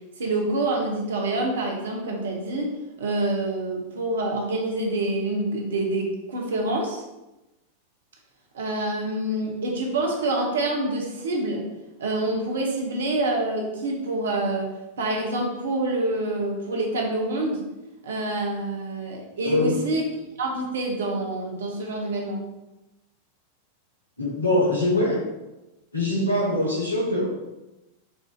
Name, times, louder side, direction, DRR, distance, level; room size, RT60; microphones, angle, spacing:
voice 1, 0.2-2.7 3.0-7.0 8.5-11.6 12.0-14.7 15.0-17.6 18.0-20.0 20.4-22.4, right 2 dB, 65° right, 1 dB, 0.7 m, -26 dB
voice 2, 19.4-19.8 24.2-25.2 25.9-27.3, left 1 dB, 80° left, -3 dB, 1.0 m, -23 dB
4.4 x 2.5 x 2.3 m, 0.99 s
figure-of-eight pair, 90°, 0 cm